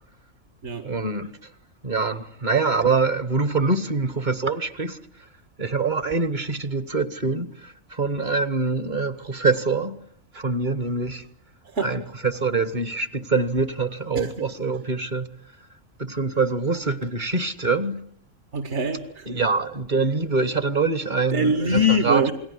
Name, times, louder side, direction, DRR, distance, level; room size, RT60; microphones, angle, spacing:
voice 1, 0.8-1.3 1.8-5.0 5.6-10.0 10.3-11.2 11.8-15.3 16.0-18.0 19.3-22.2, right 4 dB, 35° right, 1.3 m, -24 dB
voice 2, 18.5-19.3 21.3-22.3, left 1 dB, 60° right, 2.1 m, -23 dB
29.0 x 20.0 x 9.7 m
omnidirectional pair, 1.4 m